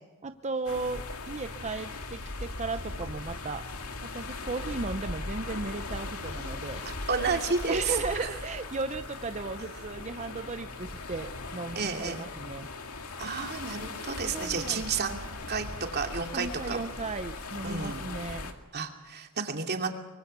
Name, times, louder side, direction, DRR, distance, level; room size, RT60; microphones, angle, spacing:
voice 1, 0.2-3.7 4.0-6.8 7.7-12.7 14.2-14.8 16.3-18.5, right 3 dB, 30° right, 9 dB, 0.7 m, -36 dB
sound 1, 0.7-18.5, left 3 dB, 80° left, 2.3 m, -39 dB
voice 2, 6.8-8.3 11.8-12.2 13.2-15.2 15.5-15.7 15.9-16.8 17.6-18.0 18.7-19.9, right 5 dB, 50° right, 3 dB, 2.7 m, -31 dB
24.5 x 23.5 x 6.9 m, 1.2 s
head